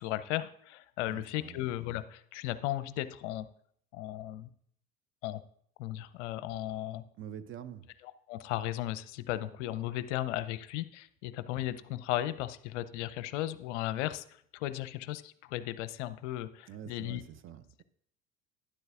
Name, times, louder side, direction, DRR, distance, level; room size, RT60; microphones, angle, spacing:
voice 1, 0.0-3.5 3.9-4.5 5.2-5.4 5.8-7.0 8.3-17.2, left 14 dB, 60° left, 14 dB, 0.7 m, -36 dB
voice 2, 1.1-1.6 7.2-7.9 16.7-17.8, right 9 dB, 30° right, 12 dB, 0.6 m, -46 dB
12.0 x 10.5 x 2.4 m, 0.66 s
figure-of-eight pair, 75°, 42 cm